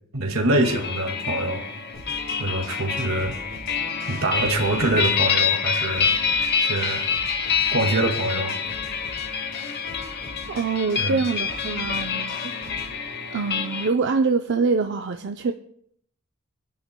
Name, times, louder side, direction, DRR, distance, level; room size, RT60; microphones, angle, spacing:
voice 1, 0.1-1.7 2.4-3.4 4.0-6.1 6.6-7.1 7.7-8.6 11.0-11.2, right 1 dB, 75° right, 3 dB, 2.1 m, -24 dB
sound 1, 0.6-13.9, left 6 dB, 50° left, 1.0 m, -27 dB
sound 2, 1.9-12.9, left 1 dB, 70° left, 5.7 m, -44 dB
voice 2, 10.5-12.6 13.3-15.5, right 4 dB, 55° right, 5 dB, 0.5 m, -24 dB
26.0 x 10.5 x 2.2 m, 0.67 s
head